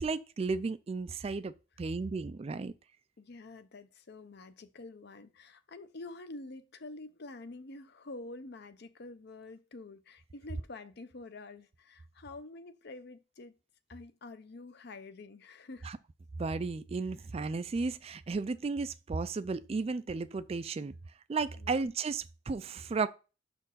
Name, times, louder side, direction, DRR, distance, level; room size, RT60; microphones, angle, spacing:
voice 1, 0.0-2.7 15.8-16.0 16.4-20.9 21.3-23.1, right 4 dB, 30° right, 0.3 m, -34 dB
voice 2, 3.2-13.5 13.9-15.9 21.6-21.9, left 2 dB, 55° left, 0.6 m, -47 dB
6.1 x 4.4 x 5.6 m
head